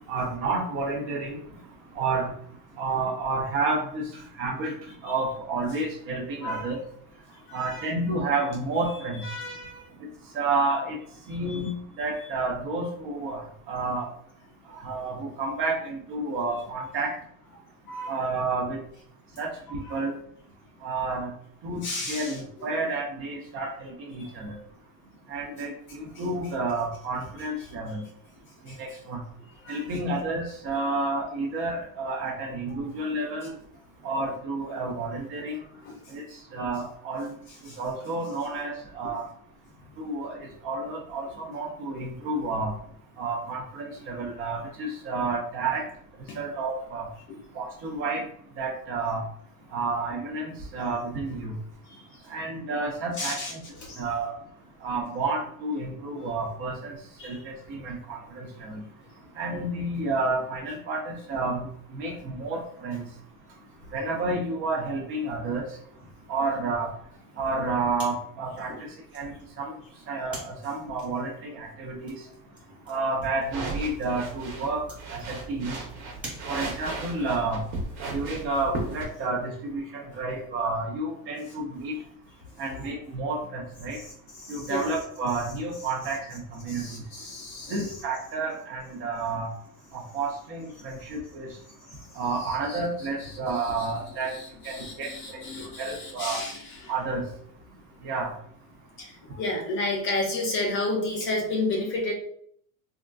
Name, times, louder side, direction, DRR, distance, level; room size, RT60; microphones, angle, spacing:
voice 1, 0.1-1.4 2.0-2.3 2.8-4.1 4.4-4.7 5.0-6.8 7.5-9.2 10.3-11.0 11.3-11.7 12.0-13.4 13.7-14.1 14.7-17.1 18.1-18.8 19.4-20.1 20.8-21.3 21.6-21.8 22.1-24.6 25.3-28.0 28.7-29.2 29.7-33.5 34.0-35.6 36.1-36.2 36.5-37.3 37.8-39.2 40.0-40.4 40.6-42.7 43.2-45.8 46.3-47.1 47.5-48.2 48.6-49.2 49.7-51.6 52.3-53.6 54.0-54.3 54.8-56.9 57.2-58.8 59.4-61.7 61.9-63.0 63.9-65.7 66.3-66.9 67.4-68.7 69.1-69.7 70.1-72.1 72.9-74.8 75.1-75.7 76.5-77.6 78.1-82.0 82.6-84.0 84.5-86.8 87.7-89.5 89.9-91.5 92.2-94.3 94.6-95.4 95.8-96.4 96.9-97.2 98.0-98.3, right 3 dB, 35° right, 0 dB, 0.4 m, -30 dB
voice 2, 6.4-6.7 7.5-7.9 9.1-9.8 17.9-18.2 19.9-20.0 21.8-22.4 24.2-24.3 28.7-28.8 29.6-29.9 35.8-36.1 37.7-37.8 46.3-46.4 51.9-52.2 53.2-53.5 53.8-54.0 57.2-57.4 83.9-84.9 86.7-87.9 91.9-92.1 92.4-92.8 93.2-93.9 94.2-96.9 99.0-102.1, left 2 dB, 35° left, 1 dB, 0.4 m, -33 dB
sound 1, 67.9-77.0, right 1 dB, 5° right, 1.0 m, -47 dB
sound 2, 73.4-79.0, right 3 dB, 55° right, 0.9 m, -36 dB
3.5 x 2.4 x 2.2 m, 0.64 s
cardioid pair, 175°, 39 cm